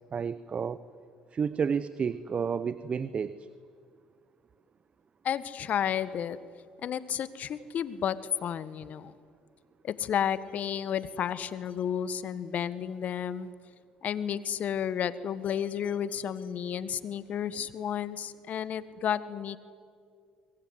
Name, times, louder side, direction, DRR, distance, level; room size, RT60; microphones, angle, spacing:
voice 1, 0.1-0.8 1.3-3.5, right 6 dB, 40° right, 15 dB, 0.9 m, -31 dB
voice 2, 5.2-6.4 6.8-9.1 9.8-13.5 14.0-19.6, left 9 dB, 55° left, 14 dB, 1.5 m, -32 dB
25.0 x 22.0 x 9.8 m, 2.1 s
hypercardioid pair, 65°, 3 cm